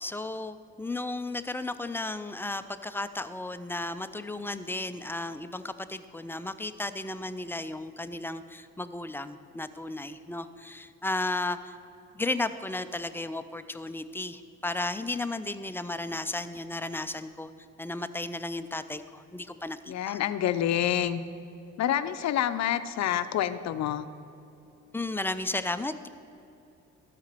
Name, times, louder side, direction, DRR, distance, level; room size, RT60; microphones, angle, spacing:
voice 1, 0.0-11.7 12.1-17.5 17.8-20.2 24.9-26.1, left 2 dB, 5° left, 10 dB, 0.4 m, -34 dB
voice 2, 19.9-21.2 21.8-24.1, left 11 dB, 65° left, 12 dB, 0.6 m, -27 dB
12.5 x 5.0 x 6.7 m, 2.8 s
cardioid pair, 90°, 30 cm